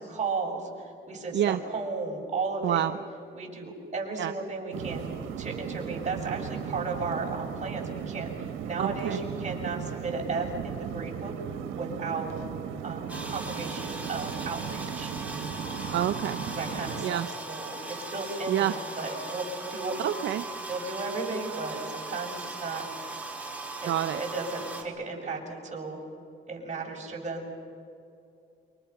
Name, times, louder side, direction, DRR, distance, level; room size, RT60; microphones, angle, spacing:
voice 1, 0.0-2.8 3.3-5.1 5.4-11.3 11.7-12.4 12.8-15.1 16.5-20.0 20.4-22.8 23.8-26.0 26.5-27.5, right 3 dB, 35° right, -1 dB, 7.1 m, -35 dB
voice 2, 2.6-3.0 4.2-4.3 8.8-9.2 15.9-16.4 17.0-17.3 18.5-18.7 20.0-20.4 23.9-24.2, right 11 dB, 70° right, 9 dB, 0.8 m, -27 dB
sound 1, 4.7-17.0, right 8 dB, 90° right, 1.3 m, -36 dB
sound 2, 13.1-24.8, right 2 dB, 5° right, 4.3 m, -39 dB
29.0 x 25.5 x 6.0 m, 2.5 s
cardioid pair, 90°, 20 cm